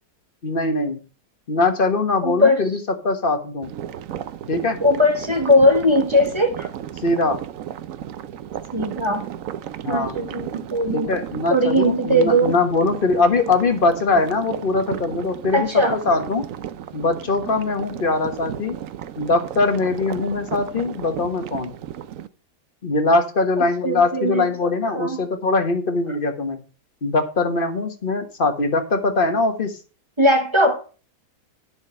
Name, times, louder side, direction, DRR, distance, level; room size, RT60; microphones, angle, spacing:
voice 1, 0.4-1.0 1.5-2.8 3.0-3.7 4.5-4.8 7.0-7.4 9.8-10.1 10.9-16.4 16.9-18.8 19.2-21.7 22.8-26.6 27.0-29.7, left 3 dB, 35° left, 1.4 m, -22 dB
voice 2, 2.2-2.6 4.8-6.7 8.7-9.3 9.9-11.1 11.5-12.6 15.5-16.0 23.8-25.2 30.2-31.0, left 1 dB, 20° right, 1.2 m, -19 dB
sound 1, 3.6-22.3, right 10 dB, 65° right, 0.9 m, -34 dB
10.5 x 6.4 x 5.6 m
omnidirectional pair, 1.8 m